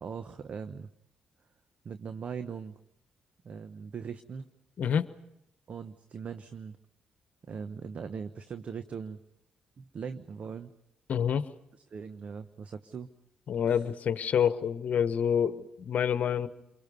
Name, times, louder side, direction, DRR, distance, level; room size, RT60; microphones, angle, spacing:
voice 1, 0.0-0.9 1.8-2.8 3.4-4.5 5.7-6.8 7.4-9.2 9.8-10.7 11.9-13.1 13.7-13.8, right 6 dB, 55° right, 11 dB, 0.9 m, -40 dB
voice 2, 11.1-11.5 13.5-16.5, left 8 dB, 60° left, 12 dB, 1.1 m, -27 dB
29.0 x 23.0 x 5.5 m, 0.83 s
supercardioid pair, 55°, 3 cm